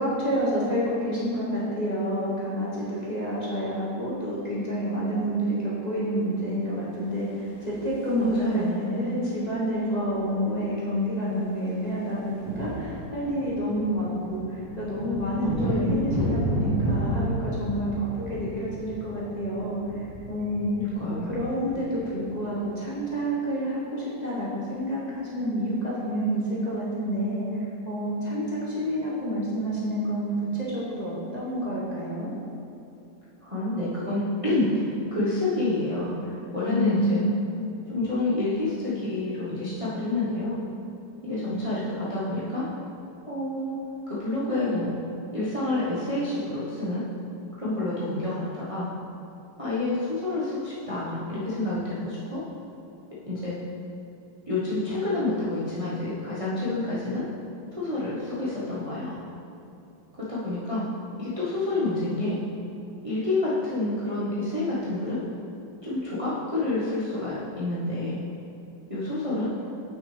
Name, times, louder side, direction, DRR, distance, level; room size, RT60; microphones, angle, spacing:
voice 1, 0.0-20.7 21.3-32.3 36.7-37.5, equal, 25° left, -8 dB, 1.3 m, -28 dB
sound 1, 7.2-8.8 10.1-10.2 10.4-10.6 10.9-23.0, right 1 dB, 65° right, 2.4 m, -32 dB
voice 2, 8.2-8.9 15.3-15.8 20.8-21.3 33.4-37.2 37.8-40.6 41.2-42.7 43.3-43.8 44.1-45.0 45.3-47.0 47.5-48.9 49.6-52.4 53.1-53.6 54.5-57.3 57.7-59.1 60.2-60.8 61.2-62.4 63.0-65.2 65.8-68.2 68.9-69.7, left 2 dB, 25° right, -9 dB, 1.0 m, -28 dB
8.8 x 6.1 x 3.3 m, 2.7 s
omnidirectional pair, 1.9 m